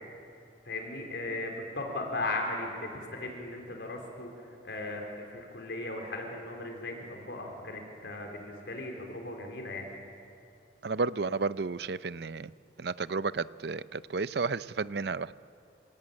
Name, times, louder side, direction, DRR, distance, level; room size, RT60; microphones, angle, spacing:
voice 1, 0.7-9.9, left 2 dB, 70° left, 2 dB, 3.8 m, -37 dB
voice 2, 10.8-12.5 12.8-15.3, right 4 dB, 60° right, 16 dB, 0.5 m, -32 dB
27.5 x 17.5 x 8.9 m, 2.5 s
head